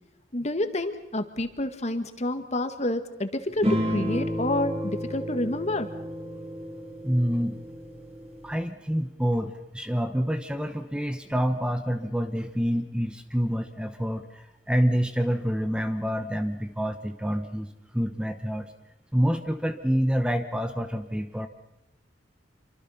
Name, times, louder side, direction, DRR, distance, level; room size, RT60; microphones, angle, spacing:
voice 1, 0.3-5.9, left 1 dB, 40° left, 9 dB, 1.8 m, -28 dB
sound 1, 3.6-8.5, equal, 35° right, 5.7 m, -31 dB
voice 2, 7.0-7.6 8.4-18.7 19.1-21.5, equal, 5° right, 8 dB, 1.0 m, -27 dB
27.0 x 24.5 x 5.8 m, 0.93 s
head